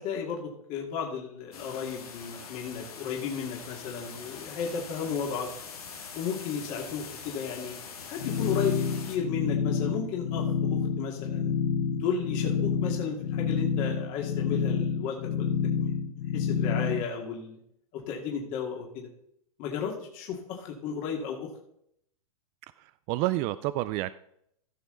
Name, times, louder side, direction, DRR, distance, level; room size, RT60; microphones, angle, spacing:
voice 1, 0.0-5.5 6.1-7.8 8.1-8.8 9.1-11.5 11.9-15.5 15.8-15.9 16.3-17.6 17.9-19.1 19.6-21.5, left 6 dB, 45° left, 0 dB, 2.2 m, -34 dB
sound 1, 1.5-9.2, left 6 dB, 85° left, 2.5 m, -43 dB
sound 2, 8.2-17.0, left 6 dB, 65° left, 0.8 m, -29 dB
voice 2, 22.8-24.1, right 17 dB, 35° right, 15 dB, 0.4 m, -29 dB
15.5 x 6.3 x 3.9 m, 0.72 s
hypercardioid pair, 125°, 19 cm